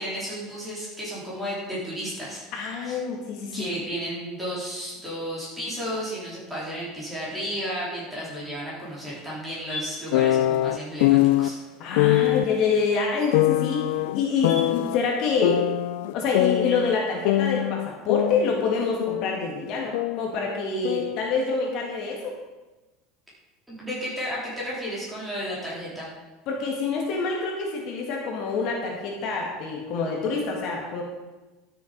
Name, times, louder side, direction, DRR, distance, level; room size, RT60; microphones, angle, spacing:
voice 1, 0.0-3.0 3.5-11.6 23.7-26.1, equal, 5° right, -7 dB, 3.9 m, -33 dB
voice 2, 2.5-3.7 11.8-15.6 16.1-22.3 26.5-31.0, left 4 dB, 45° left, 0 dB, 1.8 m, -27 dB
sound 1, 8.8-15.0, left 2 dB, 30° left, 3.6 m, -44 dB
sound 2, 10.1-11.5 12.0-12.5 13.3-15.0 15.4-17.0 17.2-19.4 19.7-21.2, left 15 dB, 80° left, 0.3 m, -23 dB
12.0 x 7.0 x 5.2 m, 1.1 s
cardioid pair, 165°, 0 cm